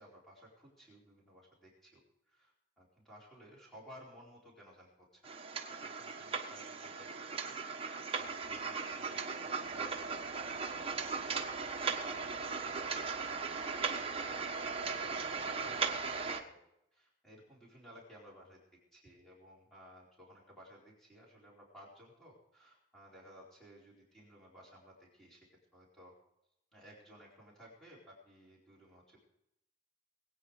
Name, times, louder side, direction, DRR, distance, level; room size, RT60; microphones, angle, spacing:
voice 1, 0.0-2.0 2.3-5.3 5.7-16.6 16.9-18.6 18.9-25.5 25.7-26.1 26.7-29.2, equal, ahead, -5 dB, 4.3 m, -57 dB
sound 1, 5.2-16.4, right 5 dB, 30° right, 1.3 m, -38 dB
21.5 x 9.3 x 5.0 m, 0.82 s
head